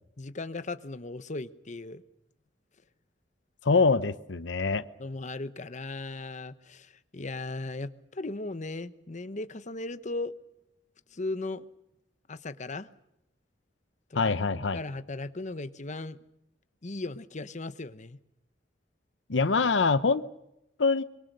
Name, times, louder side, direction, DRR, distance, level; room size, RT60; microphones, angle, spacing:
voice 1, 0.2-2.0 3.7-3.8 5.0-10.3 11.1-11.6 12.3-12.9 14.1-14.4 14.7-16.2 16.8-18.2, left 2 dB, 40° left, 1.0 m, -37 dB
voice 2, 3.6-4.8 14.1-14.8 19.3-20.2 20.8-21.0, left 4 dB, 80° left, 0.8 m, -24 dB
25.5 x 23.0 x 6.7 m
head